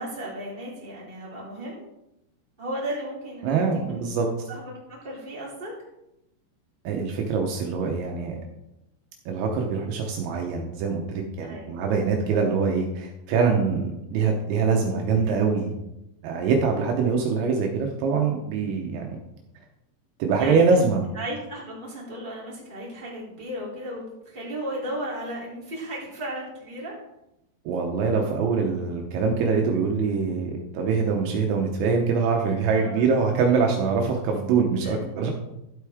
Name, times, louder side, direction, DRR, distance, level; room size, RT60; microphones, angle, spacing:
voice 1, 0.0-1.8 2.6-4.1 4.5-4.7 5.0-5.7 11.4-11.7 20.4-20.8 21.1-27.0 32.7-33.1 34.8-35.0, right 1 dB, 15° right, -6 dB, 2.5 m, -35 dB
voice 2, 3.4-4.3 6.8-8.4 9.3-15.7 16.2-19.2 20.2-21.0 27.7-35.3, right 5 dB, 80° right, 1 dB, 3.3 m, -24 dB
12.0 x 8.0 x 3.5 m, 0.88 s
omnidirectional pair, 5.3 m